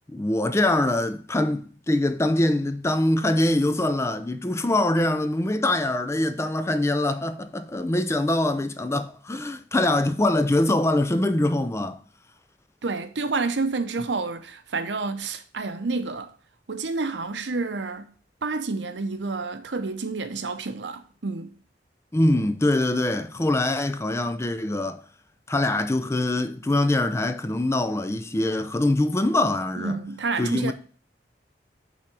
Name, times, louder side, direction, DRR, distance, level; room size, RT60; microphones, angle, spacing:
voice 1, 0.1-12.0 22.1-25.0 25.5-30.0 30.4-30.7, left 1 dB, 15° left, 0.4 m, -23 dB
voice 2, 12.8-16.3 16.7-18.1 18.4-21.5 29.8-30.7, right 3 dB, 90° right, 0.7 m, -29 dB
5.9 x 3.6 x 5.9 m
head